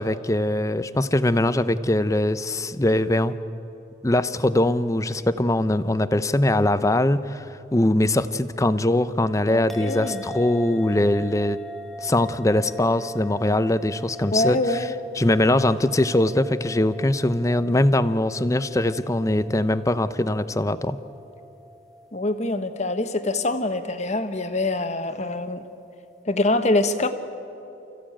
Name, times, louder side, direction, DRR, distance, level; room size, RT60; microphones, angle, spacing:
voice 1, 0.0-3.3 4.0-11.6 12.0-14.6 15.2-21.0, left 1 dB, 20° left, 13 dB, 0.6 m, -22 dB
voice 2, 9.5-10.2 14.3-14.9 22.1-25.6 26.2-27.1, left 2 dB, 40° left, 8 dB, 1.2 m, -24 dB
sound 1, 9.7-26.2, left 1 dB, ahead, 1.1 m, -42 dB
29.5 x 15.0 x 8.8 m, 2.9 s
head